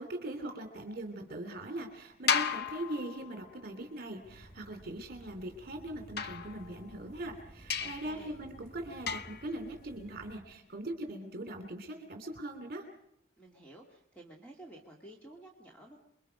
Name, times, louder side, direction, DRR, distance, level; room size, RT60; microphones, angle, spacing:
voice 1, 0.0-12.9, right 1 dB, 45° right, 5 dB, 2.9 m, -41 dB
sound 1, 2.3-3.7 6.2-7.1 7.7-8.2 9.1-9.5, left 6 dB, 50° left, 0.8 m, -34 dB
sound 2, 4.2-10.4, equal, 30° left, 6.5 m, -55 dB
voice 2, 7.8-8.4 13.4-16.0, right 1 dB, 5° left, -1 dB, 2.3 m, -52 dB
28.5 x 22.5 x 5.3 m, 0.74 s
head